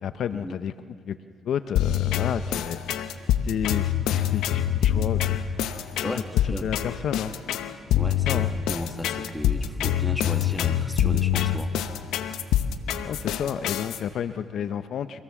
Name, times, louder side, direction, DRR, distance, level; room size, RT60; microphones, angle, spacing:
voice 1, 0.0-0.7 1.1-1.2 1.5-2.8 3.4-5.7 6.1-6.2 6.4-7.3 8.3-8.5 13.0-15.2, left 8 dB, 70° left, 11 dB, 0.6 m, -31 dB
sound 1, 1.8-14.0, left 11 dB, 90° left, 1.0 m, -25 dB
voice 2, 6.0-6.7 8.0-11.7, left 1 dB, 5° left, 5 dB, 1.8 m, -35 dB
25.0 x 17.5 x 7.2 m, 2.3 s
cardioid pair, 90°, 0 cm